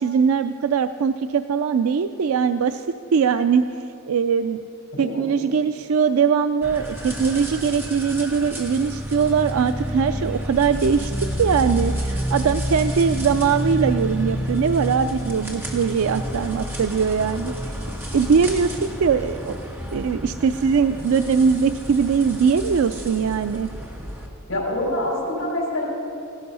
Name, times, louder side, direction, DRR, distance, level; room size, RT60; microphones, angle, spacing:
voice 1, 0.0-4.6 5.0-11.1 11.4-17.7 18.1-19.5 19.9-23.7, right 6 dB, 85° right, 10 dB, 0.4 m, -21 dB
voice 2, 4.9-5.2 24.5-25.9, left 1 dB, 75° left, -6 dB, 4.5 m, -25 dB
sound 1, 6.6-24.3, equal, 10° right, 1.8 m, -30 dB
16.5 x 12.5 x 5.5 m, 2.8 s
head